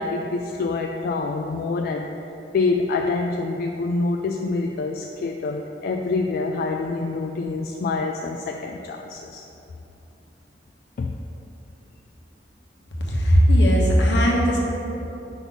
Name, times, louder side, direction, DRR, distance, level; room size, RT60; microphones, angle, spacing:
voice 1, 0.0-2.1 2.5-9.4 11.0-11.2, left 3 dB, 55° left, 2 dB, 0.3 m, -26 dB
voice 2, 13.1-14.6, equal, 75° left, -3 dB, 1.2 m, -17 dB
5.3 x 3.9 x 5.9 m, 3.0 s
head